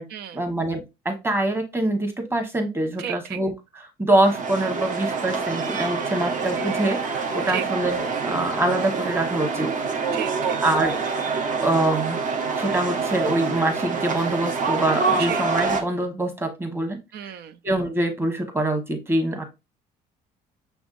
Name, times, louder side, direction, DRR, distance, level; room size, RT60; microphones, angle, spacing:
voice 1, 0.3-9.7 10.6-11.0 11.6-12.2 12.6-17.0 17.6-19.4, right 1 dB, 15° right, 1.2 m, -24 dB
voice 2, 3.0-3.4 6.2-6.4 7.5-7.6 10.1-10.6 15.2-15.5 17.1-17.6, right 10 dB, 70° right, 0.5 m, -33 dB
sound 1, 4.1-15.8, right 4 dB, 50° right, 0.9 m, -26 dB
6.1 x 3.5 x 2.5 m
cardioid pair, 110°, 17 cm